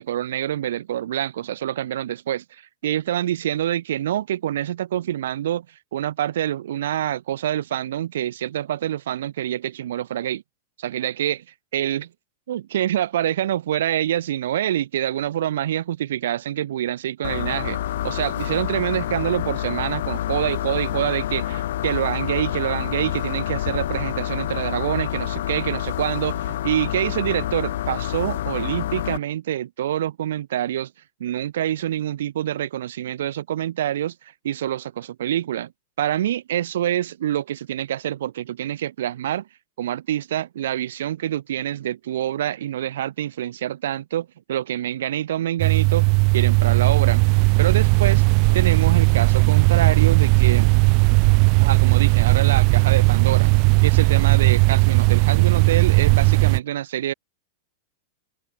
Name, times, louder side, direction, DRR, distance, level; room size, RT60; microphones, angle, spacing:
voice 1, 0.0-2.4 2.8-5.7 5.9-10.4 10.8-11.4 11.7-12.1 12.5-17.8 18.0-30.9 31.2-35.7 36.0-39.5 39.8-46.1 46.3-47.2 47.6-48.2 48.5-50.7 51.6-53.5 53.8-57.1, right 11 dB, 75° right, 4.6 m, -26 dB
sound 1, 17.2-29.2, left 13 dB, 70° left, 1.6 m, -28 dB
sound 2, 45.6-56.6, right 38 dB, 50° right, 1.1 m, -17 dB
hypercardioid pair, 110°, 0 cm